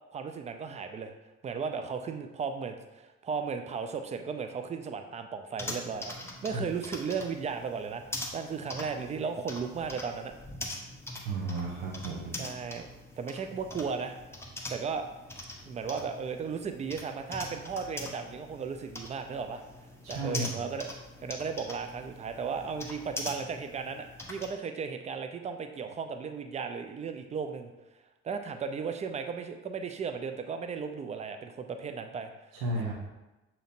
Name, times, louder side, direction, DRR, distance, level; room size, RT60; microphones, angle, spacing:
voice 1, 0.1-1.1 1.4-6.1 6.4-10.3 12.3-12.9 13.2-14.2 14.7-15.1 15.7-19.6 20.1-20.9 21.2-27.7 28.2-32.3, right 5 dB, 20° right, 7 dB, 0.3 m, -35 dB
sound 1, 5.6-24.5, left 1 dB, 5° left, 0.7 m, -43 dB
voice 2, 11.2-12.3 20.0-20.5 32.6-32.9, right 2 dB, 60° right, -2 dB, 0.8 m, -33 dB
6.3 x 2.9 x 2.6 m, 1.0 s
figure-of-eight pair, 45°, 37 cm